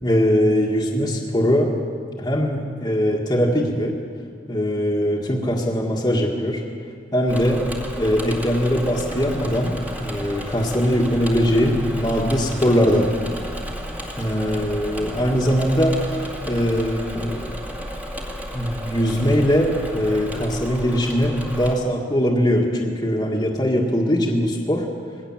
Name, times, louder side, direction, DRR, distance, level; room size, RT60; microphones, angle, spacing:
voice 1, 0.0-1.7 2.2-4.0 4.5-6.6 7.1-7.6 8.0-9.7 10.0-13.1 14.2-17.5 18.5-24.9, equal, 20° left, -2 dB, 1.8 m, -21 dB
Engine / Mechanisms, 7.3-21.8, equal, 10° right, 2.0 m, -33 dB
21.0 x 17.0 x 7.3 m, 2.1 s
head